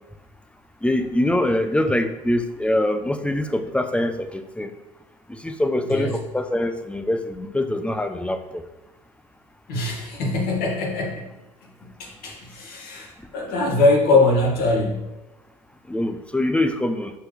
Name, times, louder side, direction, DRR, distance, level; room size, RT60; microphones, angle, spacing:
voice 1, 0.8-4.7 5.3-8.6 15.9-17.1, left 1 dB, 5° left, 9 dB, 0.9 m, -24 dB
voice 2, 9.7-11.3 11.8-15.0, left 2 dB, 60° left, 0 dB, 2.3 m, -22 dB
11.0 x 4.5 x 3.5 m, 1.0 s
hypercardioid pair, 65°, 18 cm